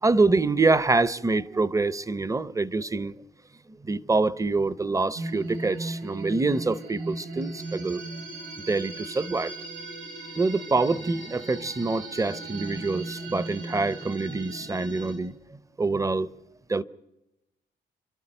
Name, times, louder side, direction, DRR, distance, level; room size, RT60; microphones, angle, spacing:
voice 1, 0.0-3.2 3.8-8.0 8.7-9.5 10.4-15.3 15.8-16.3 16.7-16.8, right 3 dB, 15° right, 0.7 m, -25 dB
sound 1, 5.2-15.1, right 2 dB, 80° right, 6.4 m, -37 dB
29.0 x 12.0 x 8.9 m
cardioid pair, 100°, 19 cm